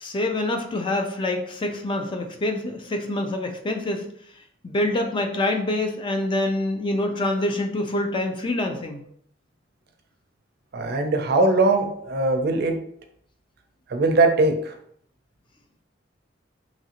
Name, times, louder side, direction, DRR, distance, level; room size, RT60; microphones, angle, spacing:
voice 1, 0.0-4.1 4.6-9.1, left 1 dB, 25° left, 4 dB, 0.4 m, -26 dB
voice 2, 10.7-12.8 13.9-14.7, right 2 dB, 55° right, 6 dB, 0.4 m, -20 dB
3.0 x 2.5 x 2.8 m, 0.66 s
head